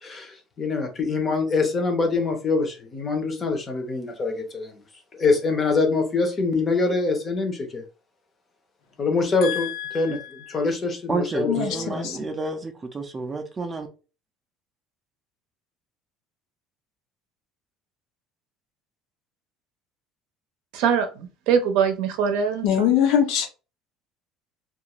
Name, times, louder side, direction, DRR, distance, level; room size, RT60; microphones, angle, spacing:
voice 1, 0.0-4.8 5.1-7.8 9.0-9.7 9.9-10.2 10.5-11.9, left 3 dB, 25° left, 0.6 m, -24 dB
voice 2, 9.4-10.3 11.5-12.2 22.6-23.5, left 9 dB, 65° left, 0.6 m, -23 dB
voice 3, 11.1-13.9, right 3 dB, 15° right, 0.4 m, -30 dB
voice 4, 20.7-22.9, right 7 dB, 75° right, 0.6 m, -23 dB
2.4 x 2.4 x 2.9 m
cardioid pair, 160°, 0 cm